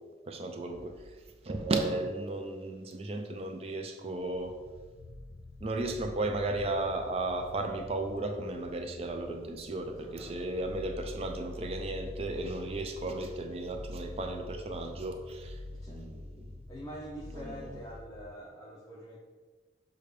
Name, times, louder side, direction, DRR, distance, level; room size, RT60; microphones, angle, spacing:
voice 1, 0.2-0.9 1.4-4.5 5.6-15.6 15.9-16.5 17.3-17.8, right 2 dB, 35° right, 5 dB, 0.4 m, -34 dB
sound 1, 0.7-2.1 3.5-3.6 3.9-18.3, left 2 dB, 80° left, 0.5 m, -46 dB
voice 2, 10.0-10.5 15.8-16.0 16.7-19.2, equal, 20° left, -4 dB, 0.5 m, -45 dB
6.7 x 2.2 x 3.2 m, 1.4 s
head